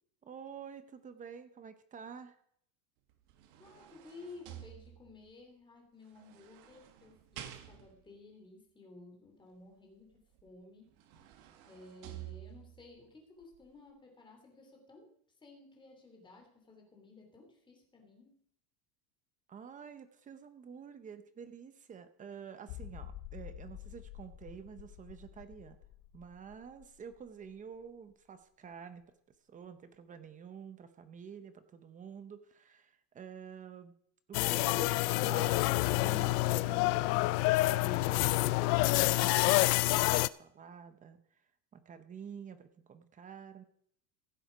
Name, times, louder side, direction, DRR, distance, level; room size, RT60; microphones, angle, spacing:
voice 1, 0.2-2.4 19.5-25.8 26.1-29.1 29.5-33.9 34.3-41.4 41.7-43.6, right 7 dB, 15° right, 11 dB, 0.7 m, -49 dB
sound 1, 3.1-5.3 6.2-8.1 10.4-10.5 10.9-12.9 13.4-13.6, right 12 dB, 55° right, 1.7 m, -50 dB
voice 2, 3.6-11.0 11.6-15.1 15.4-18.4, left 3 dB, 10° left, 1 dB, 2.8 m, -55 dB
sound 2, 22.7-28.1 28.4-28.5 29.0-29.1, left 12 dB, 50° left, 1.1 m, -49 dB
sound 3, 34.3-40.3, left 20 dB, 70° left, 0.6 m, -28 dB
15.5 x 7.7 x 5.1 m, 0.66 s
supercardioid pair, 160°, 47 cm